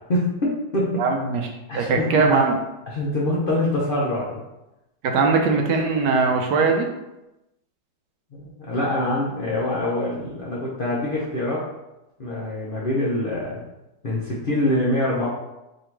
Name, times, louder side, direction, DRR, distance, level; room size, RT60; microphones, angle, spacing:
voice 1, 0.1-1.0 1.7-2.4 2.9-4.4 8.3-11.6 12.2-13.6 14.0-15.3, left 1 dB, 75° left, -5 dB, 0.4 m, -24 dB
voice 2, 1.0-2.5 5.0-6.9, right 4 dB, 70° right, 3 dB, 1.2 m, -20 dB
3.8 x 2.7 x 4.5 m, 0.96 s
omnidirectional pair, 2.0 m